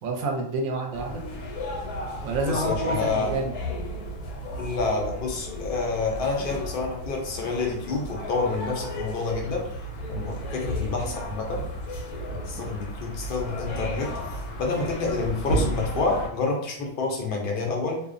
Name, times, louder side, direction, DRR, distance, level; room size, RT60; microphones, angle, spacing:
voice 1, 0.0-1.2 2.2-3.5, right 2 dB, 70° right, 2 dB, 0.9 m, -29 dB
sound 1, 0.9-16.3, equal, 85° left, 1.1 m, -33 dB
voice 2, 2.5-3.3 4.6-9.6 10.1-11.6 12.3-14.1 14.6-18.0, left 3 dB, 70° left, 0 dB, 0.5 m, -28 dB
2.5 x 2.0 x 2.4 m, 0.65 s
omnidirectional pair, 1.6 m